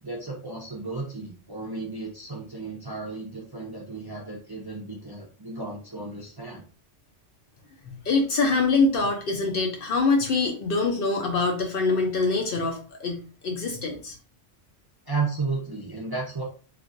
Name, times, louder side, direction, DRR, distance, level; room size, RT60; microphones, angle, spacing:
voice 1, 0.0-6.6 15.1-16.4, right 3 dB, 30° right, -3 dB, 0.5 m, -33 dB
voice 2, 8.0-14.1, left 3 dB, 55° left, 3 dB, 0.7 m, -24 dB
3.1 x 2.4 x 2.5 m, 0.37 s
omnidirectional pair, 1.2 m